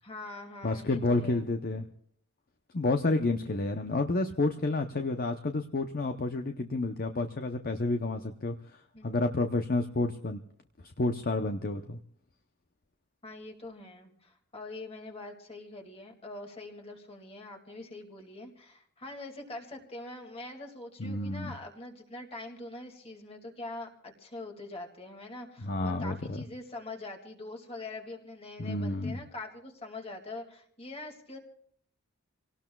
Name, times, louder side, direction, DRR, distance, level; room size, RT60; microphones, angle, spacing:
voice 1, 0.0-1.4 8.9-9.1 13.2-31.4, left 2 dB, 25° left, 2 dB, 2.2 m, -44 dB
voice 2, 0.6-1.9 2.7-8.6 9.0-10.4 11.0-12.0 21.0-21.5 25.6-26.4 28.6-29.2, left 2 dB, 45° left, 6 dB, 0.7 m, -30 dB
27.5 x 18.0 x 2.3 m, 0.67 s
head